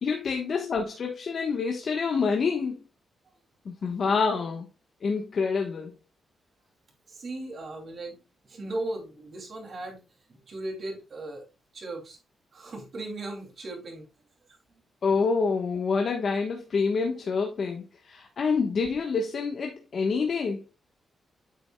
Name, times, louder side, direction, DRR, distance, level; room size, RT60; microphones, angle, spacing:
voice 1, 0.0-2.8 3.6-4.7 5.0-5.9 15.0-20.6, left 5 dB, 55° left, 1.2 m, -27 dB
voice 2, 7.1-8.2 8.4-10.0 10.3-11.5 11.7-12.2 12.5-14.1, right 2 dB, 50° right, 2.6 m, -37 dB
9.0 x 7.0 x 2.2 m
cardioid pair, 100°, 0 cm